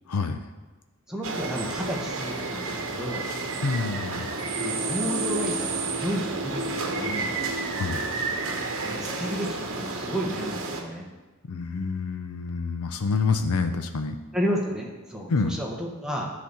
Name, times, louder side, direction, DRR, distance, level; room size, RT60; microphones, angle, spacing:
voice 1, 0.1-0.4 3.6-4.3 7.8-8.0 11.5-14.2 15.3-15.5, left 4 dB, 90° left, 7 dB, 0.6 m, -27 dB
voice 2, 1.1-3.3 4.6-7.3 8.8-11.1 14.3-16.3, equal, 5° right, -2 dB, 1.3 m, -32 dB
sound 1, 1.2-10.8, right 3 dB, 60° right, 1.1 m, -30 dB
10.5 x 4.1 x 7.0 m, 1.2 s
head